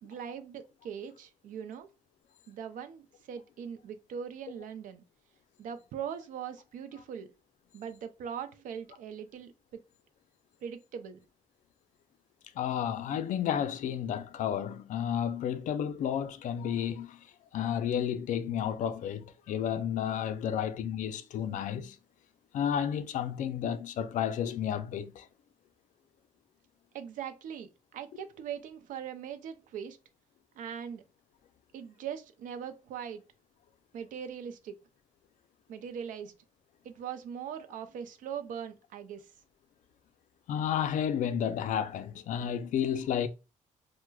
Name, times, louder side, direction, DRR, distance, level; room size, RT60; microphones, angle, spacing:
voice 1, 0.0-1.9 2.5-5.0 5.6-7.3 7.7-9.5 10.6-11.2 26.9-30.0 30.6-31.0 31.7-33.2 33.9-34.8 35.7-36.3 36.8-39.3, right 8 dB, 75° right, 0.5 m, -41 dB
voice 2, 12.6-17.2 17.5-22.0 22.5-25.3 40.5-43.3, left 9 dB, 65° left, 0.4 m, -31 dB
4.5 x 2.1 x 2.2 m
cardioid pair, 135°, 14 cm